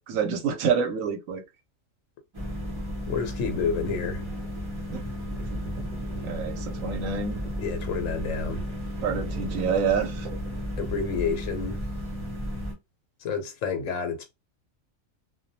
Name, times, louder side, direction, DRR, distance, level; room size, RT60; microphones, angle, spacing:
voice 1, 0.0-1.4 4.9-5.0 6.2-7.4 9.0-10.4, right 6 dB, 90° right, 1.0 m, -27 dB
sound 1, 2.3-12.7, equal, 25° right, 0.7 m, -33 dB
voice 2, 3.0-4.2 7.6-8.6 10.8-11.8 13.2-14.2, left 5 dB, 75° left, 1.0 m, -29 dB
sound 2, 3.9-10.6, right 2 dB, 60° right, 0.4 m, -43 dB
2.3 x 2.2 x 2.6 m
omnidirectional pair, 1.4 m